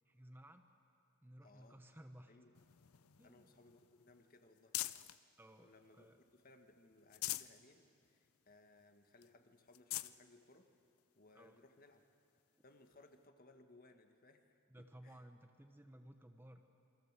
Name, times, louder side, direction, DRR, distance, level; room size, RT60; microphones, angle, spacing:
voice 1, 0.0-0.7 1.2-2.4 3.2-3.5 5.4-6.2 11.3-11.6 14.7-16.6, right 1 dB, 10° right, 6 dB, 1.0 m, -58 dB
voice 2, 1.4-1.8 2.3-2.6 3.2-4.8 5.6-10.7 11.1-12.0 12.6-15.2, left 2 dB, 45° left, 6 dB, 1.7 m, -65 dB
sound 1, 2.5-5.2 5.7-6.5 6.9-7.6 8.0-8.1 8.5-8.6 9.2-9.3 9.7-10.2 11.0-11.1 12.8-12.9, left 15 dB, 85° left, 0.6 m, -45 dB
28.0 x 23.0 x 7.5 m, 2.5 s
head